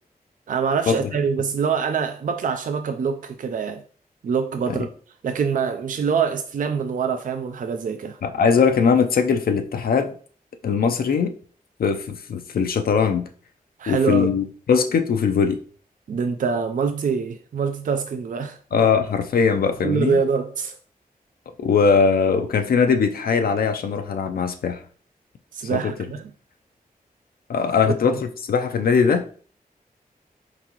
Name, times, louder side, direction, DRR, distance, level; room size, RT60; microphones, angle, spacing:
voice 1, 0.5-3.8 4.2-4.9 5.2-8.2 13.8-14.3 16.1-18.6 19.8-20.8 25.5-26.2 27.8-28.2, right 6 dB, 60° right, 0.4 m, -25 dB
voice 2, 8.2-10.1 10.6-11.3 11.8-13.3 13.9-15.6 18.7-20.2 21.6-24.8 25.7-25.9 27.5-28.2 28.4-29.2, left 6 dB, 80° left, 0.4 m, -20 dB
4.6 x 3.9 x 2.9 m
wide cardioid pair, 100°, 15 cm